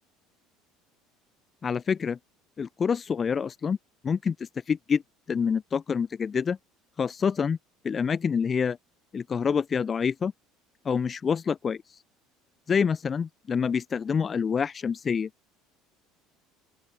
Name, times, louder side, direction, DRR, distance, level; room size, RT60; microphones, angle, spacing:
voice 1, 1.6-2.2 2.6-3.8 4.0-4.3 4.7-5.0 5.3-6.6 7.0-7.6 7.8-8.8 9.1-10.3 10.8-11.8 12.7-15.3, left 6 dB, 35° left, 0.9 m, -26 dB
open air
hypercardioid pair, 70°, 0 cm